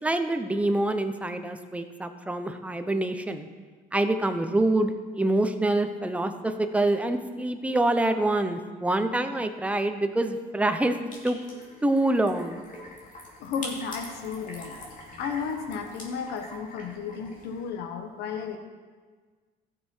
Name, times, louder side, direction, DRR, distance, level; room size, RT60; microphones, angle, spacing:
voice 1, 0.0-3.5 3.9-11.4 11.8-12.6, right 2 dB, 10° right, 7 dB, 0.8 m, -26 dB
sound 1, 11.1-17.7, left 2 dB, 50° left, 2.6 m, -44 dB
voice 2, 13.4-14.8 15.2-18.6, left 6 dB, 85° left, 5 dB, 1.1 m, -33 dB
15.5 x 6.6 x 4.5 m, 1.5 s
cardioid pair, 110°, 17 cm